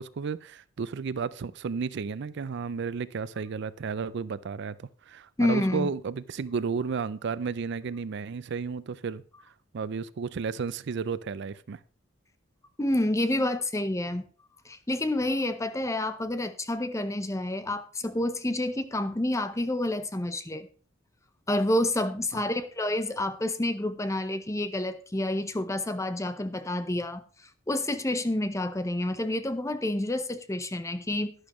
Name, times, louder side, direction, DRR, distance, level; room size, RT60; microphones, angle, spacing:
voice 1, 0.0-9.2 9.7-11.8 22.3-22.4, right 5 dB, 60° right, 0.4 m, -33 dB
voice 2, 5.4-5.9 12.8-14.2 14.7-20.7 21.5-27.2 27.7-31.3, left 1 dB, 15° left, 0.7 m, -29 dB
11.5 x 10.5 x 3.0 m
head